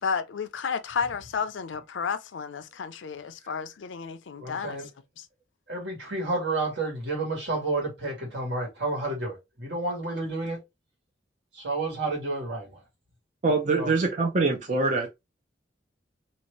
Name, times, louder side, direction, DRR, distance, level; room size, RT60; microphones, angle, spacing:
voice 1, 0.0-4.8 5.2-5.3, left 6 dB, 85° left, 0.5 m, -32 dB
voice 2, 4.4-4.9 5.7-10.6 11.5-12.8 13.7-13.9, right 2 dB, 65° right, 1.7 m, -30 dB
voice 3, 13.4-15.1, right 3 dB, 40° right, 0.6 m, -24 dB
2.9 x 2.7 x 3.1 m
head